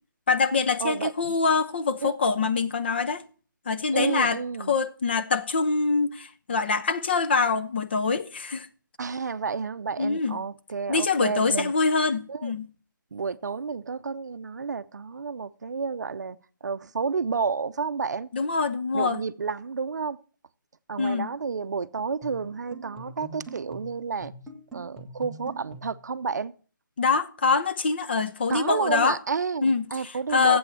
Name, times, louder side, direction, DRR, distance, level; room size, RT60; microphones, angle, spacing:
voice 1, 0.3-3.2 3.7-4.4 4.7-8.7 10.0-10.4 10.9-12.6 18.3-19.2 21.0-21.3 27.0-29.2 29.6-30.6, left 4 dB, 30° left, 0.6 m, -24 dB
voice 2, 0.8-1.4 2.0-2.5 3.9-4.8 9.0-11.7 12.3-12.6 13.1-18.3 18.9-20.2 20.9-24.3 24.7-26.5 28.5-30.6, right 5 dB, 55° right, 0.6 m, -31 dB
sound 1, 22.2-26.1, right 2 dB, ahead, 0.7 m, -43 dB
8.7 x 7.8 x 8.0 m
hypercardioid pair, 170°, 11 cm